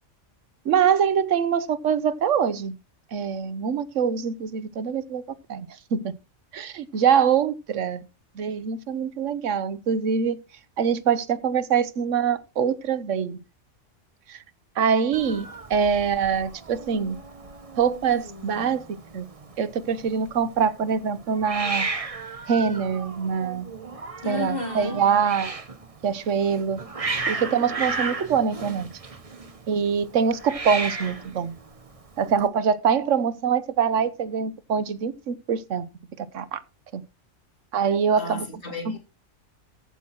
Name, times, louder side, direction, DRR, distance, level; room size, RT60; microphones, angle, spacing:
voice 1, 0.6-2.8 3.1-6.1 6.5-8.0 8.4-10.4 10.8-13.4 14.3-14.4 14.8-17.2 17.8-18.8 19.1-19.3 19.6-21.9 22.5-23.7 24.2-25.5 26.0-26.8 27.3-28.9 29.7-31.5 32.2-35.8 36.2-36.6 36.9-37.0 37.7-38.4 38.9-39.0, right 7 dB, 85° right, 1.2 m, -24 dB
Hiss, 15.1-32.5, right 3 dB, 30° right, 1.2 m, -35 dB
voice 2, 24.2-25.0 38.2-39.0, left 2 dB, 50° left, 3.3 m, -32 dB
14.0 x 6.1 x 4.3 m
omnidirectional pair, 1.3 m